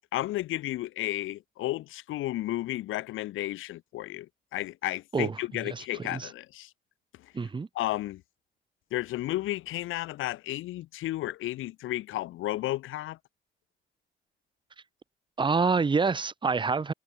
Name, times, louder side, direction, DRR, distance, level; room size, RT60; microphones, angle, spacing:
voice 1, 0.1-6.7 7.2-7.3 7.7-8.2 8.9-13.2, left 15 dB, 90° left, 3.1 m, -33 dB
voice 2, 5.7-6.3 7.3-7.7 15.4-16.9, right 4 dB, 25° right, 0.9 m, -27 dB
cardioid pair, 90°, 20 cm